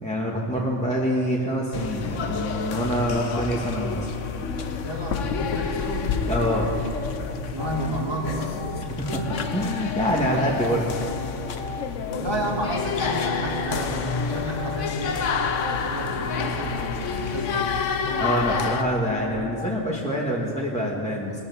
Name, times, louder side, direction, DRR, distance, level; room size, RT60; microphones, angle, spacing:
voice 1, 0.0-4.2 6.3-6.7 9.0-10.8 18.2-21.4, equal, 5° left, -5 dB, 1.6 m, -26 dB
sound 1, 1.7-18.8, left 5 dB, 85° left, 1.2 m, -29 dB
voice 2, 4.8-6.2 7.3-8.6 12.2-15.2 15.6-17.8, equal, 20° right, -1 dB, 2.2 m, -31 dB
sound 2, 7.6-19.7, left 3 dB, 35° left, 0.7 m, -36 dB
20.5 x 8.7 x 7.0 m, 2.6 s
omnidirectional pair, 1.2 m